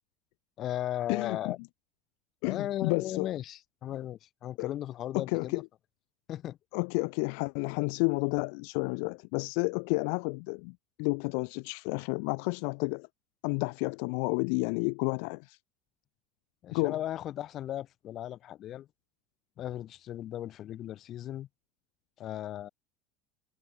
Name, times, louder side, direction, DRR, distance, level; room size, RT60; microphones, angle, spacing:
voice 1, 0.6-1.6 2.4-5.6 6.3-6.6 16.6-18.9 19.6-21.5 22.2-22.7, left 12 dB, 40° left, 1.9 m, -36 dB
voice 2, 1.1-1.5 2.4-3.3 4.6-4.7 5.1-5.6 6.7-13.1 13.4-15.6 16.7-17.0, left 40 dB or more, 70° left, 0.5 m, -31 dB
supercardioid pair, 140°, 0 cm